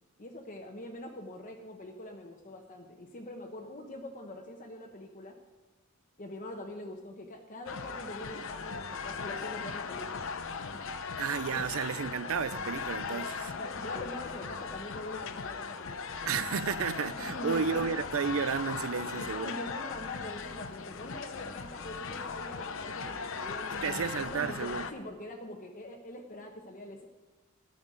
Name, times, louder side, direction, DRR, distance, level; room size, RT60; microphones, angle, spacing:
voice 1, 0.2-5.4 6.2-11.0 11.5-11.6 13.1-13.2 13.5-16.2 17.2-17.8 19.0-27.1, left 1 dB, 40° left, 1.0 m, -44 dB
sound 1, 7.7-24.9, left 5 dB, 65° left, 0.7 m, -38 dB
voice 2, 11.2-13.5 16.2-19.5 23.7-24.9, right 6 dB, 70° right, 0.5 m, -32 dB
13.0 x 5.9 x 7.8 m
head